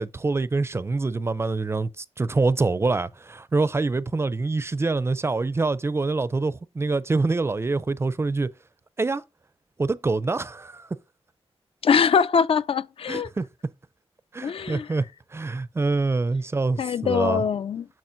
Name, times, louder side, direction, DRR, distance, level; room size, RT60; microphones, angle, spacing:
voice 1, 0.0-8.5 9.0-9.2 9.8-10.9 13.1-13.5 14.3-15.0 15.3-17.4, right 3 dB, 25° right, 0.4 m, -25 dB
voice 2, 11.8-13.3 14.4-14.9 16.8-17.9, left 6 dB, 60° left, 0.4 m, -22 dB
8.7 x 6.2 x 2.6 m
wide cardioid pair, 175°, 11 cm